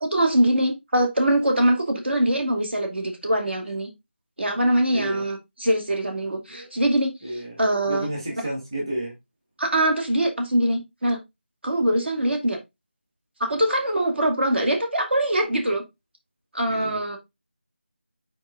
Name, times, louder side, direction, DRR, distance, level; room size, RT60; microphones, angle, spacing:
voice 1, 0.0-3.9 4.4-7.1 7.6-8.1 9.6-11.2 11.6-12.6 13.4-15.8 16.5-17.2, right 1 dB, 70° right, 2.4 m, -23 dB
voice 2, 4.9-5.2 6.5-6.7 7.2-9.1 16.7-17.0, right 1 dB, 25° right, 1.7 m, -31 dB
6.4 x 4.4 x 3.7 m
figure-of-eight pair, 175°, 6 cm